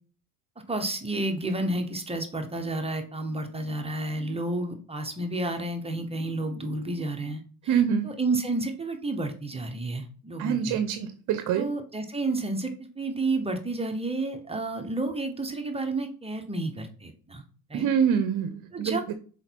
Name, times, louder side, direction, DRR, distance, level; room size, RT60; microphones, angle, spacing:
voice 1, 0.7-10.8 11.5-12.7 13.0-17.4 17.7-17.9 18.7-19.1, right 2 dB, 15° right, 5 dB, 1.0 m, -31 dB
voice 2, 7.7-8.1 10.4-11.7 17.7-19.1, right 8 dB, 45° right, 10 dB, 0.8 m, -25 dB
6.3 x 4.5 x 4.6 m, 0.41 s
supercardioid pair, 110°, 42 cm